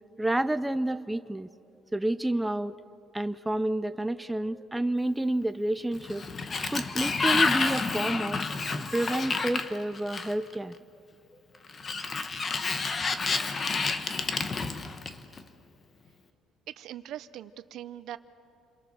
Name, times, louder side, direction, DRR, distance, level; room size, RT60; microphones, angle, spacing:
voice 1, 0.2-1.5 1.9-2.7 3.1-6.2 6.7-8.4 8.9-10.7, right 1 dB, 5° right, 12 dB, 0.5 m, -29 dB
Sliding door, 5.9-10.5 11.7-15.4, left 4 dB, 30° left, 1.2 m, -29 dB
voice 2, 16.7-18.2, right 12 dB, 65° right, 13 dB, 0.8 m, -41 dB
28.5 x 23.0 x 6.9 m, 2.5 s
cardioid pair, 135°, 0 cm